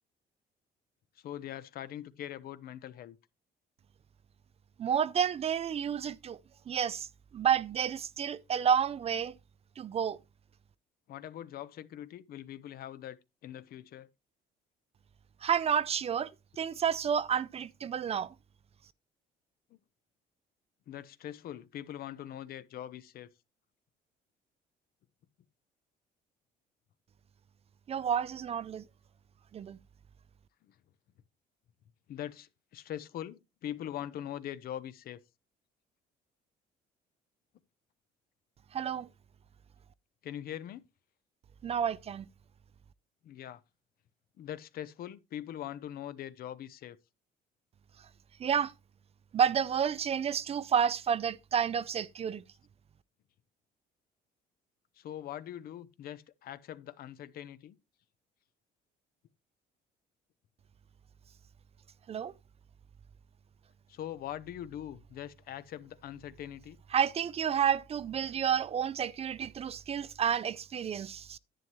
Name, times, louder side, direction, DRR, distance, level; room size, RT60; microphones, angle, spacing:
voice 1, 1.2-3.2 11.1-14.1 19.7-19.8 20.9-23.3 30.6-30.8 32.1-35.2 40.2-40.8 43.2-43.6 44.4-47.0 55.0-57.8 63.9-66.8, left 11 dB, 60° left, 0.8 m, -42 dB
voice 2, 4.8-6.4 6.7-7.1 7.3-9.4 9.8-10.2 15.4-16.3 16.6-18.3 27.9-28.8 29.5-29.8 38.7-39.1 41.6-42.3 48.4-48.7 49.3-52.4 62.1-62.3 66.9-71.4, right 8 dB, 35° right, 0.4 m, -30 dB
10.5 x 9.5 x 3.1 m
cardioid pair, 110°, 17 cm